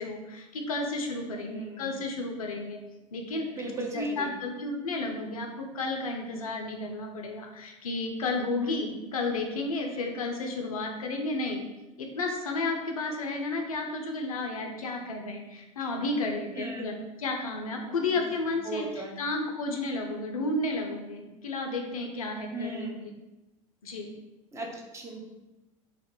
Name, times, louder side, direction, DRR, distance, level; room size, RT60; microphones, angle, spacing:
voice 1, 0.0-2.8 3.1-3.5 3.9-11.6 12.0-22.9 23.8-24.2, left 2 dB, 80° left, 2 dB, 0.4 m, -32 dB
voice 2, 1.3-2.0 3.4-4.3 8.6-8.8 16.6-16.9 18.1-18.2 18.6-19.2 22.5-23.0 24.5-25.2, right 2 dB, 15° right, 0 dB, 0.5 m, -37 dB
2.2 x 2.0 x 2.9 m, 1.0 s
figure-of-eight pair, 80°, 18 cm